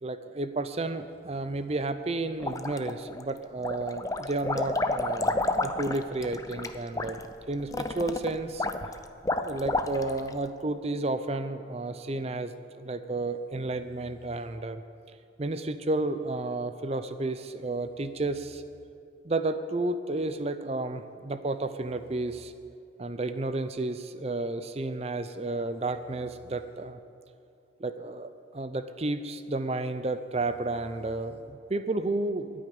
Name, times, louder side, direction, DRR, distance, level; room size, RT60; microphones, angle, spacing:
voice 1, 0.0-7.2 7.5-8.7 9.4-14.8 15.4-18.6 19.2-22.5 23.0-27.0 27.8-32.5, right 2 dB, 30° right, 10 dB, 0.5 m, -32 dB
sound 1, 2.4-3.2 3.6-10.3, left 2 dB, 15° left, 0.5 m, -30 dB
21.5 x 8.6 x 5.3 m, 2.6 s
head